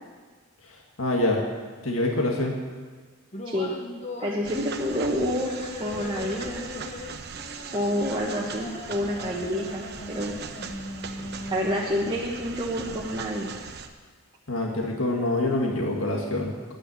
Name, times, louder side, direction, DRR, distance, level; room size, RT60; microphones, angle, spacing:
voice 1, 0.7-1.4 1.8-2.6 14.5-16.7, left 2 dB, 70° left, 0 dB, 1.9 m, -26 dB
sound 1, 3.3-12.3, left 2 dB, 30° left, 0.8 m, -39 dB
voice 2, 3.4-3.8 4.2-5.5 5.8-6.7 7.7-10.4 11.5-13.5, equal, 25° right, -4 dB, 1.4 m, -28 dB
sound 2, 4.4-13.9, right 5 dB, 50° right, 0.9 m, -39 dB
10.0 x 9.4 x 8.8 m, 1.4 s
head